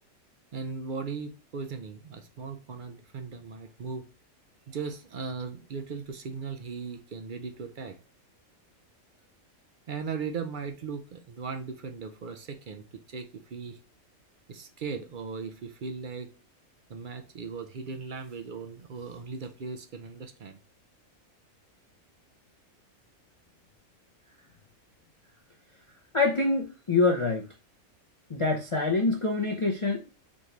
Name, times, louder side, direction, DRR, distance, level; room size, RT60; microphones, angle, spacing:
voice 1, 0.5-4.1 4.7-8.0 9.9-13.8 14.5-16.3 16.9-20.6, right 5 dB, 55° right, 0.5 m, -38 dB
voice 2, 26.1-27.4 28.3-30.1, left 3 dB, 40° left, 0.4 m, -25 dB
4.3 x 3.0 x 3.1 m
omnidirectional pair, 1.4 m